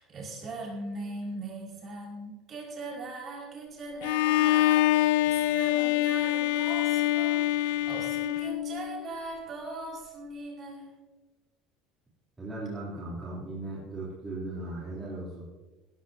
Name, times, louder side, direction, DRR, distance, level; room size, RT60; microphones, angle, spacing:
voice 1, 0.0-10.9, right 2 dB, 30° right, -3 dB, 5.1 m, -40 dB
Bowed string instrument, 4.0-9.0, left 15 dB, 90° left, 0.3 m, -25 dB
voice 2, 12.4-15.4, right 2 dB, 15° right, -9 dB, 3.2 m, -37 dB
17.0 x 14.5 x 2.8 m, 1.2 s
cardioid pair, 170°, 0 cm